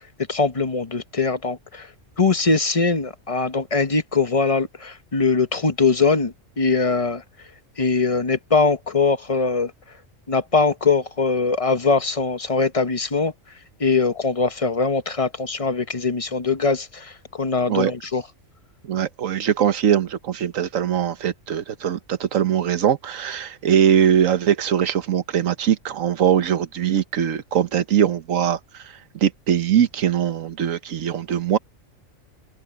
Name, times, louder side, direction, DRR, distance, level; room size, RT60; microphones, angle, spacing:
voice 1, 0.3-1.9 2.2-7.2 7.8-9.7 10.3-13.3 13.8-18.2, left 4 dB, 30° left, 1.0 m, -21 dB
voice 2, 18.9-28.8 29.2-31.6, right 9 dB, 80° right, 1.4 m, -21 dB
omnidirectional pair, 1.4 m